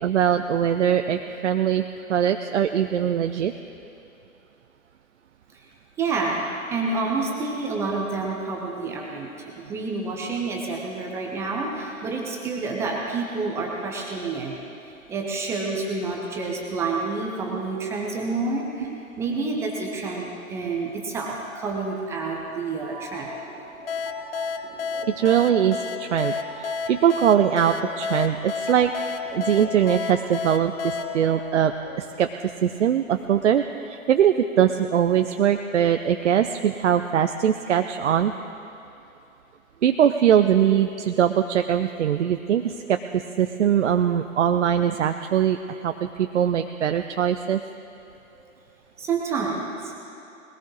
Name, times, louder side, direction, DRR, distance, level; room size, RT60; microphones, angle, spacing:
voice 1, 0.0-1.8 2.1-3.5 17.5-17.6 18.8-19.0 25.2-28.9 29.3-31.7 32.0-32.3 32.6-38.3 39.8-47.6, right 9 dB, 55° right, 7 dB, 0.6 m, -22 dB
voice 2, 6.0-14.6 15.1-23.3 48.3-48.5 49.0-49.9, right 3 dB, 5° right, -1 dB, 0.5 m, -29 dB
sound 1, 22.9-32.2, right 3 dB, 40° right, 2.4 m, -41 dB
sound 2, 23.9-32.3, left 6 dB, 45° left, 0.7 m, -32 dB
21.0 x 17.0 x 3.2 m, 2.8 s
figure-of-eight pair, 125°, 42 cm